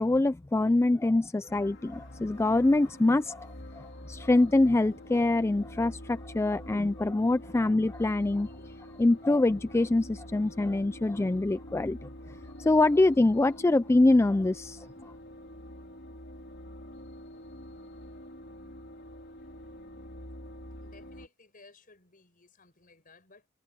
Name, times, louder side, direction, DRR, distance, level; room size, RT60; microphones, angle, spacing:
voice 1, 0.0-8.5 9.0-15.1, left 2 dB, 15° left, 0.3 m, -25 dB
sound 1, 1.5-21.3, equal, 60° left, 4.0 m, -46 dB
voice 2, 20.7-23.5, left 3 dB, 45° left, 6.5 m, -57 dB
head